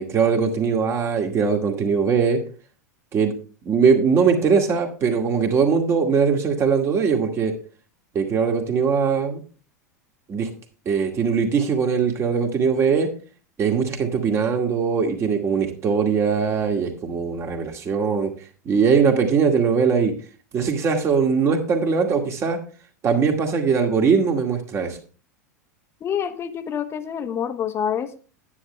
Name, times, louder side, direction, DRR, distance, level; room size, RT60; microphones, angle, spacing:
voice 1, 0.0-2.4 3.1-3.3 3.6-7.5 8.1-9.4 10.3-10.5 10.9-13.1 13.6-18.3 18.7-20.1 20.5-22.6 23.0-25.0, right 6 dB, 30° right, 3 dB, 2.2 m, -21 dB
voice 2, 26.0-28.3, left 8 dB, 25° left, 10 dB, 1.1 m, -27 dB
9.9 x 9.7 x 3.3 m, 0.38 s
figure-of-eight pair, 85°, 9 cm